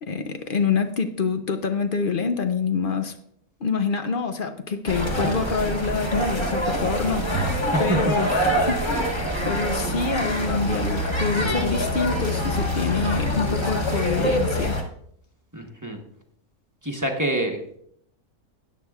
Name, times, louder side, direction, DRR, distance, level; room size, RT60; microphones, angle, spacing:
voice 1, 0.0-3.2 3.6-14.8, left 5 dB, 55° left, 0.6 m, -26 dB
sound 1, 4.9-14.8, equal, 20° left, 1.3 m, -25 dB
voice 2, 15.5-16.0 16.8-17.6, right 1 dB, 15° right, 1.0 m, -26 dB
13.5 x 9.4 x 2.4 m
omnidirectional pair, 1.6 m